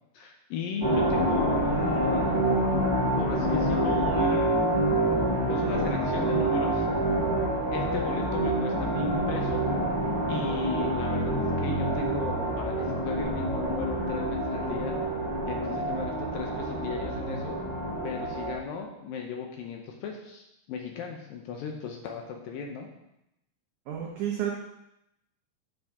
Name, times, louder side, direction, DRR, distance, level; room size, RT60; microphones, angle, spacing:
voice 1, 0.1-2.4 3.2-4.7 5.5-6.9 7.7-9.6 10.3-15.0 15.4-17.6 18.0-22.9, left 5 dB, 75° left, 2 dB, 2.2 m, -36 dB
sound 1, 0.8-18.5, right 1 dB, 15° left, 0.8 m, -27 dB
voice 2, 23.9-24.5, right 10 dB, 90° right, -1 dB, 1.6 m, -30 dB
7.7 x 7.4 x 3.6 m, 0.84 s
omnidirectional pair, 4.6 m